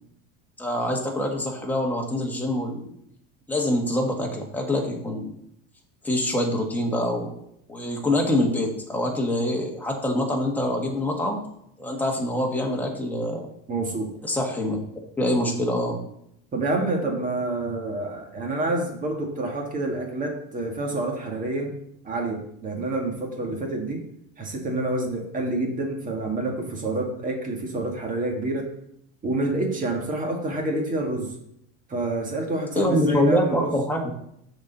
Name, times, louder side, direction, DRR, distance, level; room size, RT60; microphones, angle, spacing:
voice 1, 0.6-2.9 3.5-5.3 6.0-7.3 7.7-11.4 11.8-13.5 14.2-14.8 15.2-16.0 32.7-34.1, left 1 dB, 5° left, 0 dB, 1.5 m, -25 dB
voice 2, 13.7-14.1 16.5-21.7 22.0-24.0 24.4-28.6 29.2-31.3 31.9-33.8, right 2 dB, 25° right, 1 dB, 1.8 m, -28 dB
6.9 x 4.3 x 6.7 m, 0.74 s
supercardioid pair, 145°, 33 cm